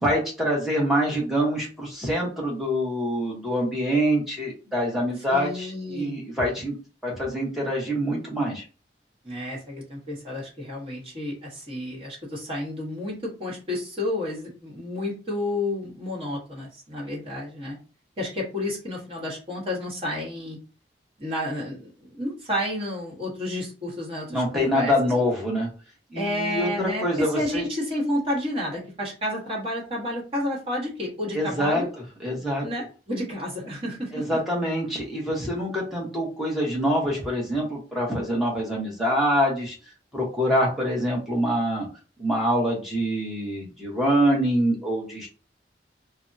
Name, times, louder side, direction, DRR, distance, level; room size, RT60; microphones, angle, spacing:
voice 1, 0.0-6.8 7.0-8.6 24.3-25.7 26.1-27.6 31.3-31.8 32.2-32.6 34.1-39.7 40.1-41.9 42.2-45.3, equal, ahead, -4 dB, 0.9 m, -25 dB
voice 2, 5.3-6.1 9.2-17.8 18.2-20.6 21.2-24.9 26.1-31.9 32.6-34.2, left 1 dB, 30° right, -3 dB, 1.2 m, -31 dB
3.3 x 2.1 x 2.6 m, 0.35 s
head